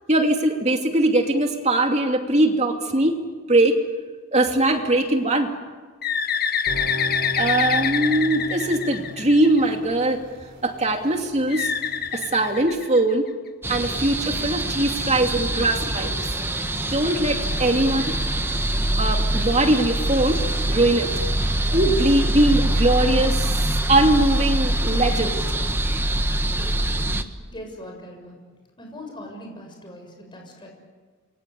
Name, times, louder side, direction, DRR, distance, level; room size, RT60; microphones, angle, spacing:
voice 1, 0.1-3.1 3.5-3.8 4.3-5.5 7.4-10.2 10.6-11.7 12.1-13.3 13.7-16.2 16.8-18.1 19.0-20.4 20.7-21.1 21.7-25.4, right 1 dB, 35° right, 3 dB, 2.7 m, -21 dB
Bird, 6.0-9.7 11.5-13.3, left 7 dB, 45° left, 1.3 m, -26 dB
sound 1, 6.7-12.7, equal, 55° right, 4.2 m, -37 dB
sound 2, 13.6-27.2, right 1 dB, 10° right, 1.3 m, -24 dB
voice 2, 26.8-27.2 27.5-28.4 28.8-30.7, equal, 25° left, 2 dB, 7.0 m, -40 dB
28.0 x 23.5 x 8.4 m, 1.4 s
head